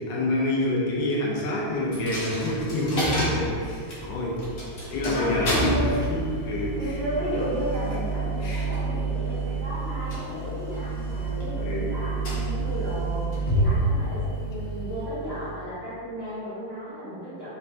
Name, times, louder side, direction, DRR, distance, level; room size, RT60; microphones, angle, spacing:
voice 1, 0.0-4.4 4.9-6.8 8.4-8.7 11.6-11.9 13.4-13.5, left 1 dB, 70° left, -4 dB, 1.3 m, -27 dB
Coin (dropping), 1.9-15.6, right 2 dB, 45° left, 0.7 m, -29 dB
voice 2, 5.1-5.9 6.8-17.5, equal, 35° right, -15 dB, 1.7 m, -33 dB
4.4 x 3.2 x 2.8 m, 2.2 s
omnidirectional pair, 2.2 m